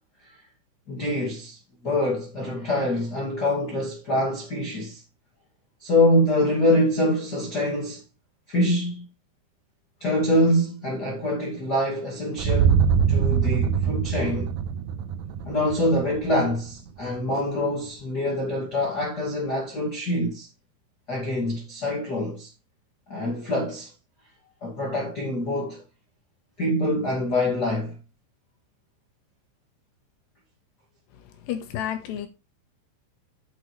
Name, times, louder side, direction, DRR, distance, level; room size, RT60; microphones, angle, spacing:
voice 1, 0.9-1.6 1.8-5.0 5.8-8.0 8.5-9.0 10.0-14.5 15.4-20.5 21.1-22.5 23.1-23.9 24.6-25.8 26.6-28.0, left 1 dB, 30° left, 2.0 m, -25 dB
sound 1, 12.4-16.4, right 7 dB, 90° right, 2.0 m, -23 dB
voice 2, 31.5-32.3, left 10 dB, 70° left, 3.2 m, -30 dB
9.3 x 8.0 x 3.3 m
omnidirectional pair, 5.4 m